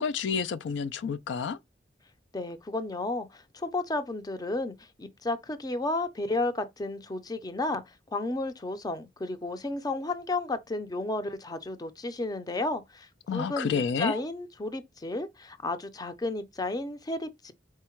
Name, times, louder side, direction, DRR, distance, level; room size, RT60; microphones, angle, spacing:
voice 1, 0.0-1.6 13.3-14.2, left 6 dB, 80° left, 0.3 m, -29 dB
voice 2, 2.3-7.8 8.1-17.5, left 2 dB, 20° left, 0.5 m, -32 dB
4.6 x 2.1 x 4.4 m
head